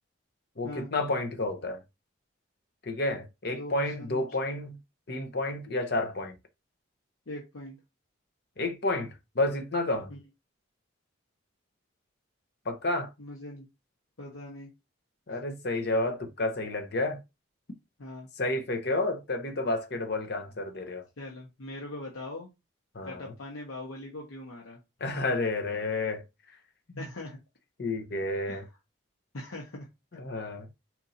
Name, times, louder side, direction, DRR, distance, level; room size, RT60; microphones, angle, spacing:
voice 1, 0.6-1.8 2.8-4.8 5.1-6.3 8.6-10.1 12.7-13.1 15.3-17.2 18.4-21.1 22.9-23.3 25.0-26.2 26.9-27.0 27.8-28.6 30.1-30.7, left 2 dB, 50° left, 0.8 m, -30 dB
voice 2, 3.5-4.2 7.3-7.8 10.1-10.2 13.2-13.7 14.2-14.7 15.3-15.4 18.0-18.3 21.2-22.5 23.0-24.8 27.0-27.4 28.5-28.6 29.3-29.9 30.3-30.6, left 1 dB, 85° left, 1.0 m, -41 dB
4.4 x 2.6 x 4.1 m
head